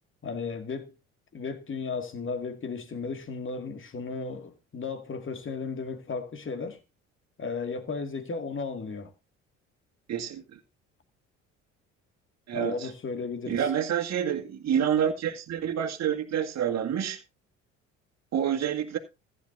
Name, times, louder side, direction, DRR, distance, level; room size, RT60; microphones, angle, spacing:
voice 1, 0.2-0.9 1.3-6.8 7.4-9.1 12.5-13.7, left 4 dB, 35° left, 2.2 m, -35 dB
voice 2, 10.1-10.6 12.5-12.9 13.5-17.2 18.3-19.0, right 9 dB, 45° right, 2.0 m, -28 dB
15.0 x 9.7 x 2.6 m
hypercardioid pair, 60°, 36 cm